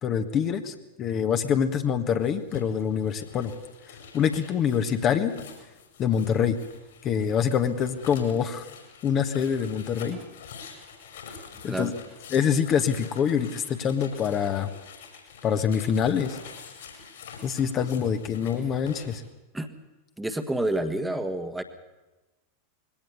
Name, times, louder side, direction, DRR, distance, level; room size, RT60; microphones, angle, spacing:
voice 1, 0.0-3.5 4.1-5.3 6.0-6.6 7.0-8.6 9.0-10.2 11.6-11.9 12.3-14.7 15.4-16.4 17.4-19.2, left 7 dB, 30° left, 7 dB, 1.5 m, -25 dB
sound 1, 2.2-19.2, left 6 dB, 60° left, 5.4 m, -46 dB
voice 2, 20.2-21.6, right 1 dB, 5° right, 7 dB, 1.6 m, -28 dB
21.5 x 17.5 x 6.9 m, 1.1 s
figure-of-eight pair, 90°, 0 cm